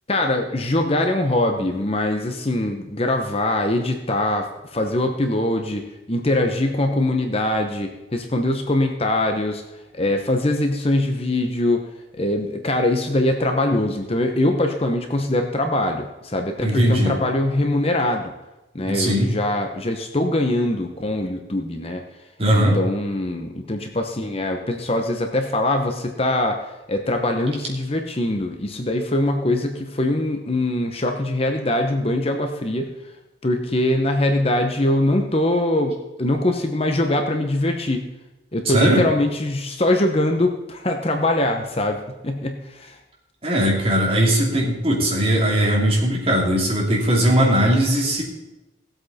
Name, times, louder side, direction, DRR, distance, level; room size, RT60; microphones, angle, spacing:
voice 1, 0.1-9.6 9.9-11.8 12.1-18.3 18.7-22.0 22.5-32.9 33.4-38.1 38.5-43.0, left 1 dB, 30° left, 4 dB, 1.0 m, -22 dB
voice 2, 16.6-17.2 18.8-19.3 22.4-22.8 38.7-39.0 43.4-48.2, right 1 dB, 30° right, -3 dB, 3.0 m, -19 dB
17.5 x 8.0 x 4.3 m, 0.99 s
head